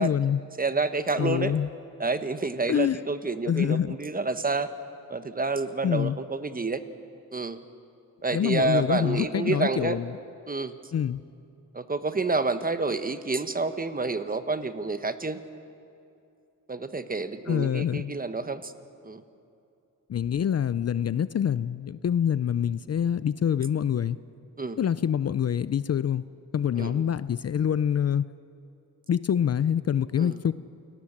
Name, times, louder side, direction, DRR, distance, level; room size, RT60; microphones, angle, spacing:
voice 1, 0.0-0.4 1.2-1.7 2.7-3.0 3.5-4.0 5.8-6.2 8.3-10.1 10.9-11.2 17.5-18.1 20.1-24.2 24.8-26.2 26.5-28.2 29.1-30.5, left 9 dB, 45° left, 16 dB, 0.5 m, -25 dB
voice 2, 0.6-1.5 2.0-4.7 5.1-6.8 7.3-7.6 8.2-10.0 10.5-10.8 11.7-15.4 16.7-18.7 19.0-19.2 24.6-24.8 26.8-27.0 30.2-30.4, right 3 dB, 25° right, 11 dB, 1.1 m, -29 dB
29.0 x 18.5 x 7.4 m, 2.6 s
wide cardioid pair, 110°, 35 cm